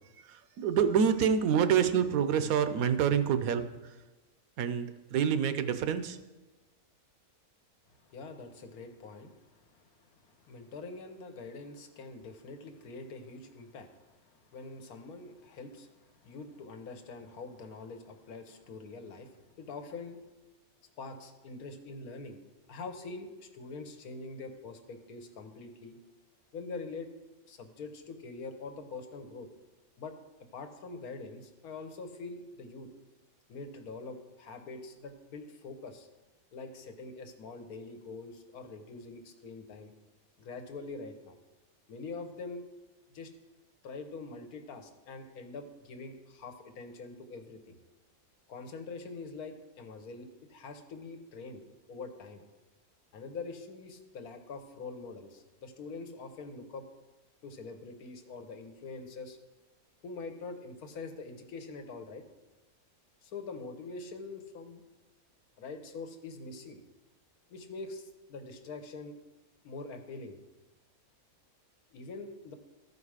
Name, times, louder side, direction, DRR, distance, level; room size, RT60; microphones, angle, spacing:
voice 1, 0.3-3.7 4.6-6.2, right 7 dB, 80° right, 11 dB, 1.1 m, -27 dB
voice 2, 8.1-20.2 21.0-22.4 22.7-26.0 26.5-27.1 27.5-29.5 30.0-30.1 30.5-32.9 33.5-36.1 36.5-39.9 40.4-41.4 41.9-42.6 43.1-43.3 43.8-47.8 48.5-51.6 51.9-52.4 53.1-56.8 57.4-59.4 60.0-62.2 63.2-64.8 65.6-66.8 67.5-69.2 69.6-70.4 71.9-72.5, left 3 dB, 90° left, 6 dB, 1.4 m, -44 dB
13.0 x 4.8 x 4.8 m, 1.1 s
omnidirectional pair, 1.5 m